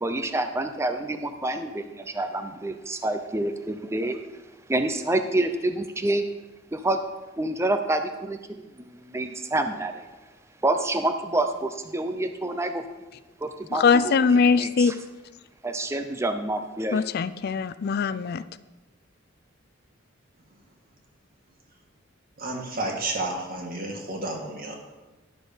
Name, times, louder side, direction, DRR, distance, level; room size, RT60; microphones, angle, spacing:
voice 1, 0.0-4.2 4.7-6.2 6.7-7.0 7.4-10.1 10.6-12.8 13.4-15.0 15.6-17.0, right 2 dB, 15° right, 7 dB, 0.5 m, -28 dB
voice 2, 13.7-14.9 16.9-18.4, left 5 dB, 50° left, 15 dB, 0.4 m, -21 dB
voice 3, 22.4-24.8, right 2 dB, 45° right, 1 dB, 1.8 m, -31 dB
11.5 x 6.3 x 5.1 m, 1.1 s
head